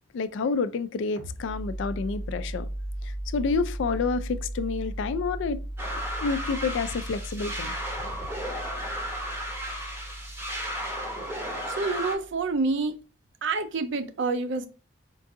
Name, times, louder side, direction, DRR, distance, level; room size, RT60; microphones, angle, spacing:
voice 1, 0.1-2.7 3.0-5.6 6.2-7.7, left 4 dB, 65° left, 0.3 m, -29 dB
sound 1, 1.2-12.5, right 1 dB, 85° right, 1.3 m, -37 dB
sound 2, 5.8-12.2, equal, 10° right, 0.7 m, -34 dB
voice 2, 11.7-13.0 13.4-14.7, right 3 dB, 60° right, 0.5 m, -27 dB
4.5 x 2.5 x 2.6 m
head